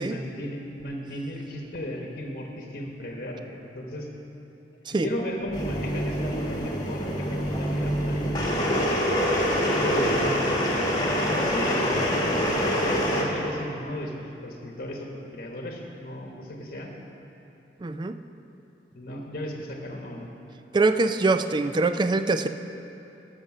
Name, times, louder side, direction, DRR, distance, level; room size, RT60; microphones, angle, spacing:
voice 1, 0.0-4.1 5.0-8.9 9.8-10.5 11.0-16.9 18.9-20.3, equal, 50° left, 1 dB, 1.1 m, -35 dB
sound 1, 5.5-13.2, equal, 20° left, 1.4 m, -25 dB
voice 2, 17.8-18.1 20.7-22.5, right 3 dB, 25° right, 10 dB, 0.3 m, -23 dB
12.0 x 6.6 x 6.0 m, 2.9 s
head